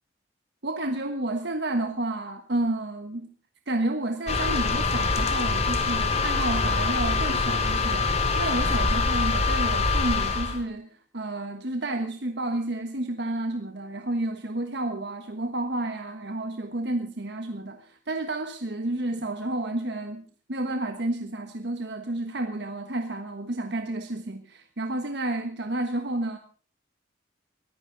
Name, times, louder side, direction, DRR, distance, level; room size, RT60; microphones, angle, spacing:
voice 1, 0.6-3.3 3.7-26.4, right 2 dB, 60° right, 6 dB, 1.4 m, -31 dB
ventilation old laptop, 4.3-10.6, left 4 dB, 35° left, 2.6 m, -24 dB
22.0 x 15.0 x 4.0 m, 0.39 s
head